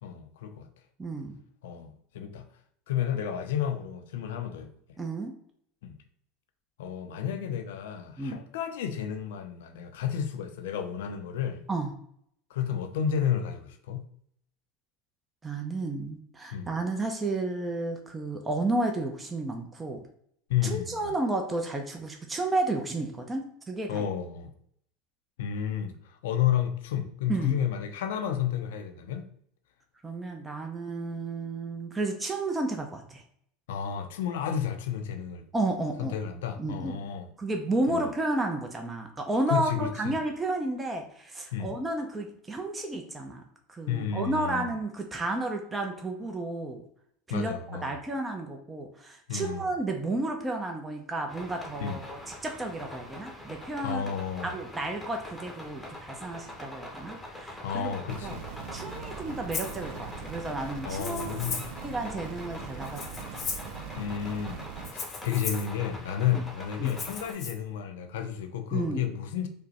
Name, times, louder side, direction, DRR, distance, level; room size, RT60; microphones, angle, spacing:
voice 1, 0.0-0.7 1.6-2.4 2.9-4.7 5.8-6.0 6.8-11.6 12.5-14.1 16.5-16.7 20.5-21.1 23.9-24.5 25.4-29.3 33.7-35.4 36.0-37.3 37.9-38.1 39.5-40.2 41.5-41.7 43.9-44.7 47.3-48.0 49.3-49.7 51.8-52.0 53.8-54.5 57.6-58.4 60.8-61.6 64.0-64.6 64.9-69.5, left 9 dB, 80° left, 0.5 m, -31 dB
voice 2, 1.0-1.4 5.0-5.3 8.2-8.4 11.7-11.9 15.4-20.0 20.6-24.1 27.3-27.6 30.0-33.2 35.5-36.1 36.6-37.0 37.4-43.4 43.7-46.8 47.3-47.6 47.8-54.1 54.4-57.9 58.2-58.3 58.7-61.5 61.8-63.0 66.3-66.4 66.8-66.9 68.7-69.1, right 2 dB, 15° right, 0.6 m, -32 dB
sound 1, 51.3-67.3, left 1 dB, 5° left, 0.9 m, -44 dB
sound 2, 58.1-64.9, right 7 dB, 75° right, 0.5 m, -42 dB
Rattle (instrument), 59.5-59.8 60.9-61.8 62.8-63.8 64.8-65.7 66.9-67.5, left 5 dB, 35° left, 0.7 m, -36 dB
5.0 x 2.1 x 2.9 m
supercardioid pair, 105°, 0 cm